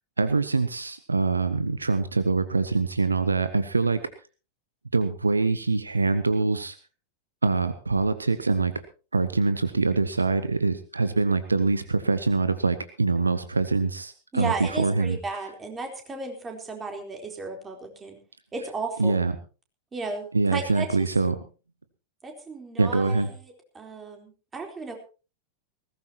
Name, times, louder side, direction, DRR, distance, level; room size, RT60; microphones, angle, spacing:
voice 1, 0.2-4.0 4.9-6.7 7.4-8.7 9.1-15.2 19.0-19.3 20.3-21.4 22.8-23.3, right 3 dB, 80° right, 12 dB, 1.0 m, -24 dB
voice 2, 14.3-18.2 18.5-19.2 19.9-20.9 22.2-24.9, right 3 dB, 15° right, 3 dB, 4.1 m, -35 dB
20.0 x 17.0 x 3.0 m, 0.34 s
figure-of-eight pair, 90°, 0 cm